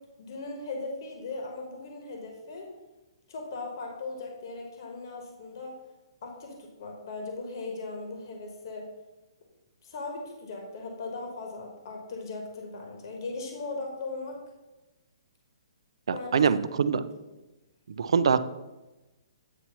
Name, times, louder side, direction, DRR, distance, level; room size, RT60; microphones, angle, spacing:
voice 1, 0.2-2.7 3.3-5.7 6.2-8.9 9.8-14.4 16.1-16.4 16.8-17.0, left 3 dB, 50° left, 1 dB, 1.2 m, -38 dB
voice 2, 16.1-17.0 18.0-18.4, right 6 dB, 75° right, 13 dB, 0.4 m, -24 dB
8.6 x 3.0 x 5.5 m, 1.1 s
hypercardioid pair, 165°, 3 cm